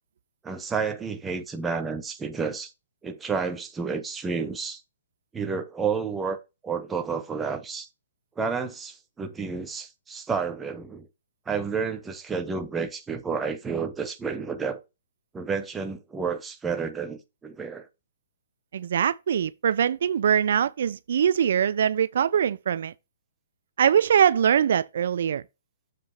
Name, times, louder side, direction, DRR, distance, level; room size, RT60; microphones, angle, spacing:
voice 1, 0.4-2.7 3.0-4.8 5.3-7.9 8.4-11.1 11.5-14.8 15.3-17.9, right 5 dB, 10° right, 0.8 m, -30 dB
voice 2, 18.7-22.9 23.8-25.4, right 8 dB, 60° right, 0.4 m, -22 dB
7.4 x 4.0 x 4.7 m
hypercardioid pair, 165°, 0 cm